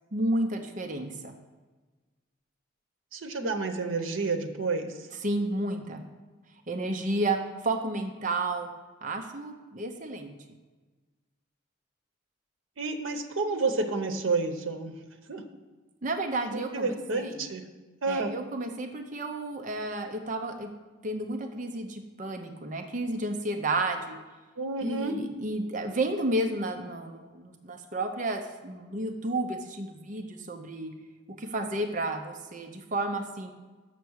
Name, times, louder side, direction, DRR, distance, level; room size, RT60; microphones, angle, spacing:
voice 1, 0.1-1.3 5.1-6.0 6.7-8.7 9.0-10.3 16.0-17.3 18.1-20.7 21.0-24.2 24.8-30.9 31.4-33.5, right 2 dB, 40° right, 5 dB, 0.7 m, -31 dB
voice 2, 3.1-4.9 12.8-14.9 15.3-15.4 16.5-17.6 18.0-18.3 24.6-25.1, right 3 dB, 85° right, 6 dB, 0.8 m, -30 dB
6.9 x 5.9 x 6.3 m, 1.3 s
head